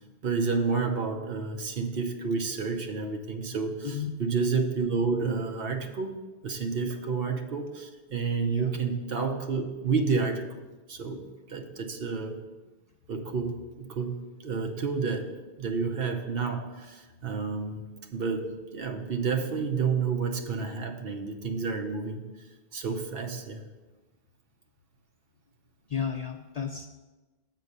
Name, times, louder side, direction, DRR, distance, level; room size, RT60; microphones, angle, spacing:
voice 1, 0.2-6.1 6.4-12.4 13.1-17.8 18.1-22.3 22.7-23.6, right 5 dB, 65° right, 5 dB, 1.0 m, -30 dB
voice 2, 25.9-26.9, left 7 dB, 55° left, 4 dB, 0.4 m, -33 dB
8.2 x 4.4 x 6.6 m, 1.2 s
omnidirectional pair, 1.1 m